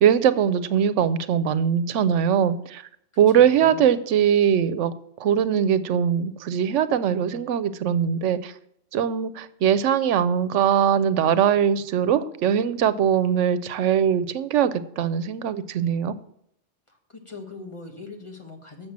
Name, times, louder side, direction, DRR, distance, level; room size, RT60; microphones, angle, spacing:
voice 1, 0.0-2.8 3.2-4.9 5.2-8.5 8.9-16.2, right 8 dB, 80° right, 15 dB, 0.9 m, -21 dB
voice 2, 3.1-3.8 7.3-7.4 16.9-18.9, left 4 dB, 25° left, 1 dB, 1.4 m, -41 dB
7.3 x 6.7 x 7.3 m, 0.71 s
omnidirectional pair, 1.2 m